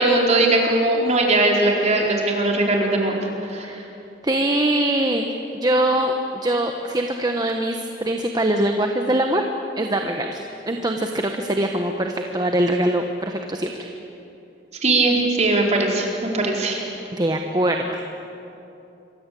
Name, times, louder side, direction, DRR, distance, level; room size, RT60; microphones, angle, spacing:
voice 1, 0.0-3.7 14.8-16.8, right 2 dB, 40° right, -1 dB, 4.7 m, -20 dB
voice 2, 4.2-5.2 5.5-9.4 9.8-13.7 17.1-18.0, right 1 dB, 20° right, 4 dB, 1.3 m, -22 dB
27.5 x 23.5 x 8.6 m, 2.9 s
head